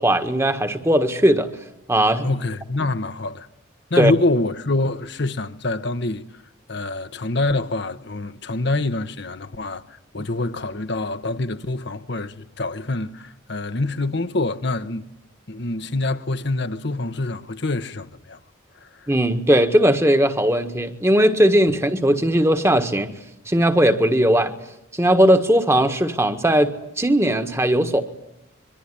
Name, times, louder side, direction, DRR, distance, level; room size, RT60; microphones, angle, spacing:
voice 1, 0.0-1.5 1.9-2.3 4.0-4.1 19.1-23.1 23.5-24.5 24.9-28.0, right 1 dB, 15° right, 1.6 m, -18 dB
voice 2, 2.2-3.5 3.9-6.2 6.7-15.1 15.5-18.4 18.8-19.1, left 2 dB, 55° left, 1.1 m, -25 dB
25.0 x 24.0 x 10.0 m
head